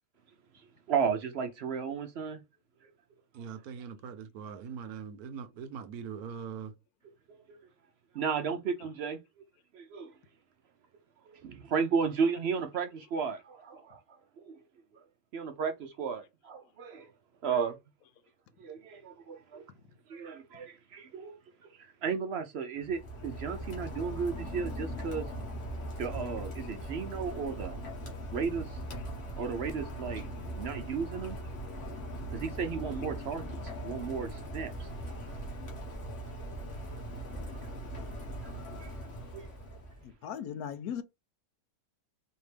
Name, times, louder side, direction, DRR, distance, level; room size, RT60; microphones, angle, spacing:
voice 1, 0.9-2.4 4.5-4.6 7.5-7.6 8.1-9.2 9.7-10.1 11.3-14.0 14.4-14.5 15.3-17.1 17.4-17.8 18.6-19.7 20.1-21.4 21.8-25.3 26.0-27.8 28.3-28.8 29.4-30.2 30.5-31.4 32.3-33.6 33.8-35.2 38.4-38.9 39.3-39.5, right 6 dB, 65° right, 0.7 m, -34 dB
voice 2, 3.3-6.7, right 7 dB, 90° right, 1.2 m, -41 dB
Rain, 22.8-40.1, right 1 dB, 55° left, 1.7 m, -40 dB
voice 3, 40.0-41.0, left 8 dB, 85° left, 1.1 m, -38 dB
4.4 x 2.8 x 3.3 m
omnidirectional pair, 1.5 m